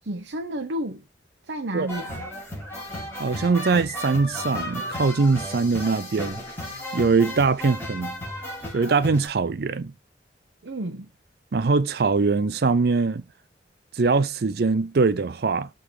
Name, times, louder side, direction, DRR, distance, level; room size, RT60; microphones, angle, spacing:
voice 1, 0.0-1.0 1.4-2.2 10.6-11.1, right 1 dB, 85° right, 0.9 m, -31 dB
sound 1, 1.9-9.3, left 1 dB, 15° left, 3.6 m, -34 dB
voice 2, 3.2-6.4 6.9-8.2 8.7-9.9 11.5-13.2 14.0-15.7, right 4 dB, 60° right, 0.5 m, -22 dB
6.8 x 3.8 x 4.7 m
head